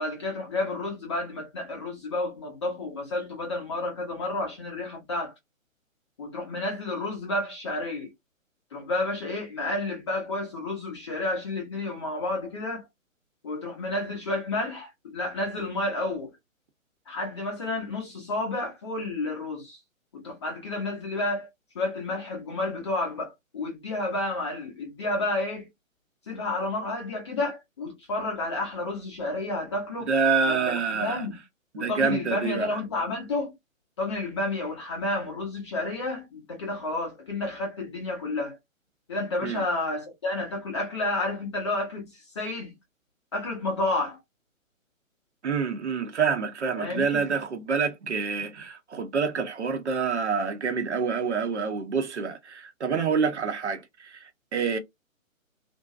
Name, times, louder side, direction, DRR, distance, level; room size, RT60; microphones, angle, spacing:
voice 1, 0.0-5.3 6.2-8.1 8.7-12.9 13.4-16.3 17.1-19.8 20.1-21.5 21.7-25.7 26.3-30.1 30.5-31.3 31.8-33.5 34.0-38.6 39.1-42.7 43.3-44.2 46.8-47.2, left 2 dB, 20° left, 0.6 m, -31 dB
voice 2, 30.0-31.3 31.7-32.8 39.4-39.6 45.4-54.8, right 5 dB, 55° right, 0.8 m, -27 dB
2.5 x 2.2 x 2.3 m
figure-of-eight pair, 135°, 41 cm